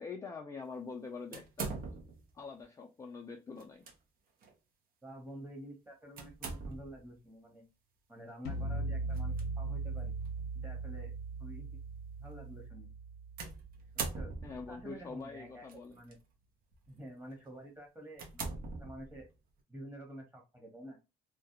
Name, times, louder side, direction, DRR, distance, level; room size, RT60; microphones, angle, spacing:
voice 1, 0.0-1.7 2.3-3.9 14.4-16.0, left 4 dB, 20° left, 0.3 m, -45 dB
sound 1, 1.3-2.3 3.6-3.9 4.4-4.5 6.2-7.1 9.1-9.4 10.3-10.4 13.4-14.8 15.7-16.1 16.7-16.9 17.4-17.5 18.1-19.4, right 4 dB, 60° right, 0.7 m, -41 dB
voice 2, 5.0-7.6 8.1-10.1 10.5-11.1 11.4-11.8 12.2-12.9 13.9-14.3 14.7-15.6 15.9-16.2 16.9-18.5 18.8-19.3 19.7-21.0, right 1 dB, 10° right, 1.0 m, -49 dB
sound 2, 8.5-14.5, right 3 dB, 90° left, 0.5 m, -39 dB
2.3 x 2.0 x 2.8 m
cardioid pair, 110°, 17 cm